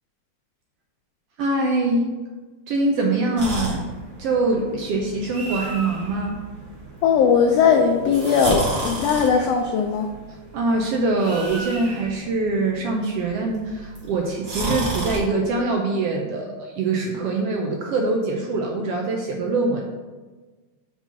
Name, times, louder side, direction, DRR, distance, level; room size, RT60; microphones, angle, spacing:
voice 1, 1.4-2.1 2.7-3.9 4.2-6.4 10.5-19.8, right 2 dB, 75° right, 1 dB, 1.5 m, -23 dB
sound 1, 3.4-15.2, right 2 dB, 35° right, 1.8 m, -33 dB
voice 2, 7.0-10.1, left 6 dB, 85° left, 4 dB, 1.4 m, -19 dB
5.5 x 4.8 x 5.6 m, 1.3 s
omnidirectional pair, 3.4 m